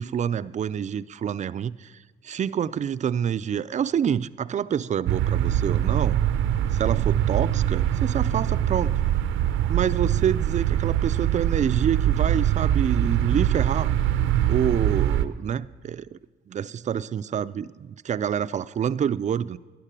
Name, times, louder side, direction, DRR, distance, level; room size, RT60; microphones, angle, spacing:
voice 1, 0.0-2.0 2.2-6.2 6.7-9.0 9.7-13.9 14.5-16.2 16.5-19.6, right 8 dB, 35° right, 0.4 m, -27 dB
sound 1, 5.1-15.3, right 11 dB, 90° right, 0.6 m, -23 dB
11.5 x 11.0 x 7.4 m
cardioid pair, 90°, 20 cm